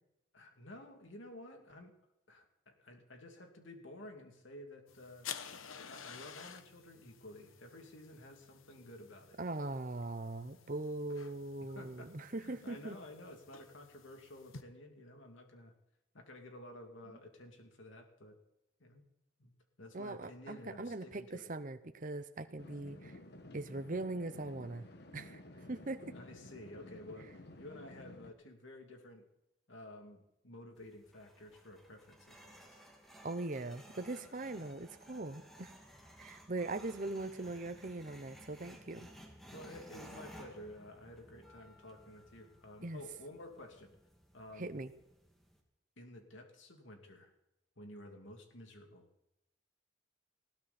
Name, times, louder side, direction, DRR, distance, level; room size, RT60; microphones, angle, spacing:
voice 1, 0.3-1.9 2.3-5.3 5.9-9.4 11.7-15.7 16.1-18.3 18.8-19.0 19.4-19.5 19.8-21.5 26.1-29.2 29.7-32.8 39.5-43.9 44.3-44.7 46.0-47.3 47.8-49.1, left 1 dB, 70° left, 3 dB, 2.8 m, -52 dB
sound 1, 4.9-14.6, left 7 dB, 85° left, 1.2 m, -52 dB
voice 2, 9.4-13.0 19.9-23.2 23.5-24.9 25.1-25.4 25.7-26.1 33.2-35.7 36.2-39.1 42.8-43.0 44.6-44.9, right 2 dB, 40° right, 10 dB, 0.9 m, -41 dB
sound 2, 22.6-28.3, left 1 dB, 55° left, 1.3 m, -53 dB
sound 3, 30.8-45.6, equal, ahead, 2.3 m, -57 dB
19.5 x 16.5 x 4.3 m, 0.88 s
head